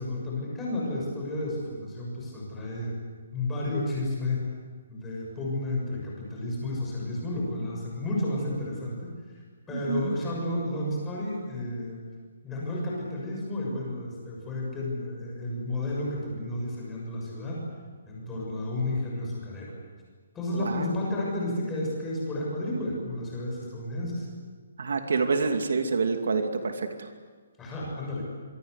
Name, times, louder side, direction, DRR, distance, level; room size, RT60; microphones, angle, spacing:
voice 1, 0.0-4.4 4.9-12.0 12.4-17.6 18.0-19.7 20.3-24.3 27.6-28.3, left 1 dB, 10° left, -4 dB, 6.8 m, -32 dB
voice 2, 9.7-10.2 20.5-20.9 24.8-27.1, right 4 dB, 70° right, 5 dB, 2.6 m, -27 dB
27.5 x 23.5 x 8.3 m, 1.5 s
hypercardioid pair, 180°, 0 cm